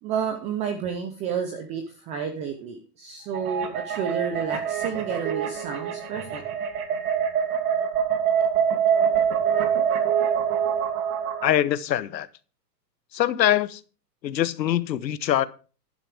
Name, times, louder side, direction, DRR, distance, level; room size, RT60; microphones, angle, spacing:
voice 1, 0.0-6.4, right 7 dB, 15° right, 6 dB, 0.5 m, -30 dB
sound 1, 3.3-11.5, right 8 dB, 60° right, 2.8 m, -25 dB
voice 2, 11.4-12.3 13.1-13.8 14.2-15.5, left 12 dB, 85° left, 16 dB, 1.1 m, -23 dB
11.5 x 11.0 x 3.5 m, 0.36 s
hypercardioid pair, 145°, 50 cm